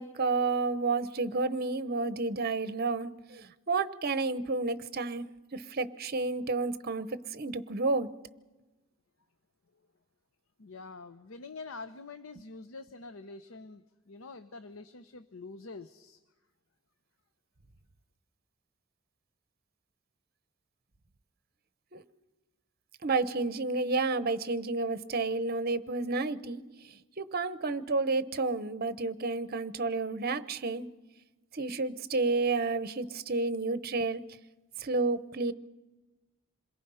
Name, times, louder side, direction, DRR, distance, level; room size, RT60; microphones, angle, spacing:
voice 1, 0.0-5.3 5.5-8.1 21.9-22.0 23.0-26.6 26.9-30.8 31.5-34.2 34.8-35.5, right 3 dB, 50° right, 14 dB, 1.0 m, -31 dB
voice 2, 10.6-16.2, left 3 dB, 80° left, 12 dB, 0.8 m, -46 dB
27.5 x 22.0 x 5.6 m, 1.1 s
head